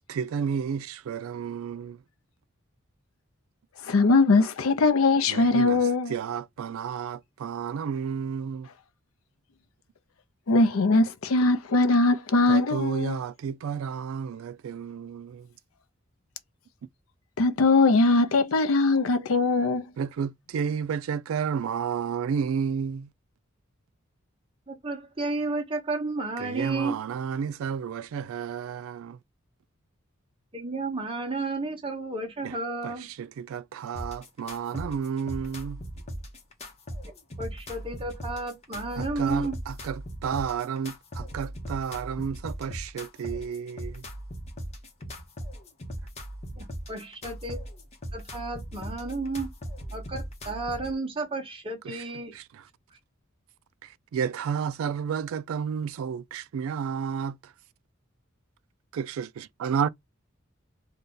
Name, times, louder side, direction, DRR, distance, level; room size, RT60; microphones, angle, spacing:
voice 1, 0.1-2.0 5.3-5.8 6.1-8.7 12.5-15.5 20.0-23.1 26.4-29.2 32.4-32.5 32.8-35.8 39.0-44.1 51.9-52.0 52.3-52.6 53.8-57.5 58.9-59.9, right 7 dB, 75° right, 0.3 m, -31 dB
voice 2, 3.8-6.2 10.5-13.2 17.4-19.9, left 3 dB, 85° left, 0.5 m, -21 dB
voice 3, 24.7-27.0 30.5-33.1 37.4-39.6 46.6-47.6 48.1-49.5 49.9-52.3, right 3 dB, 25° right, 0.9 m, -32 dB
sound 1, 34.0-50.9, equal, 30° left, 0.8 m, -39 dB
2.6 x 2.3 x 3.7 m
head